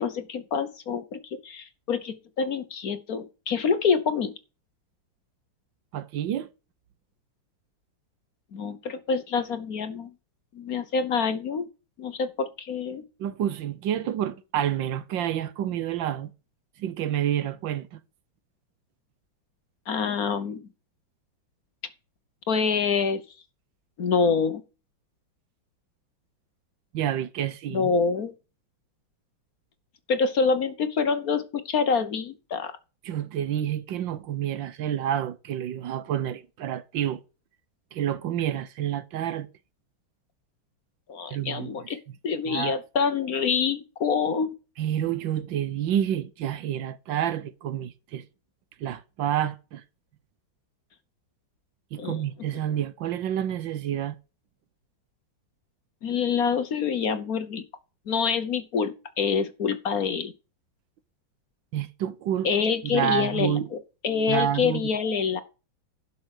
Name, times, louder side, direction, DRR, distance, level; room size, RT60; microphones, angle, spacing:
voice 1, 0.0-4.3 8.5-10.1 10.5-11.7 12.0-13.0 19.9-20.6 22.5-23.2 24.0-24.6 27.7-28.3 30.1-32.7 41.1-42.0 42.2-44.5 52.0-52.2 56.0-57.6 58.1-60.3 62.4-63.8 64.0-65.4, left 5 dB, 55° left, 1.3 m, -26 dB
voice 2, 5.9-6.5 13.2-16.3 16.8-18.0 26.9-27.9 33.0-37.2 37.9-39.5 41.3-41.7 42.5-42.7 44.8-48.2 48.8-49.8 51.9-54.2 61.7-62.5 62.8-63.7 64.3-64.8, right 10 dB, 75° right, 1.6 m, -28 dB
11.5 x 5.8 x 6.3 m
omnidirectional pair, 2.1 m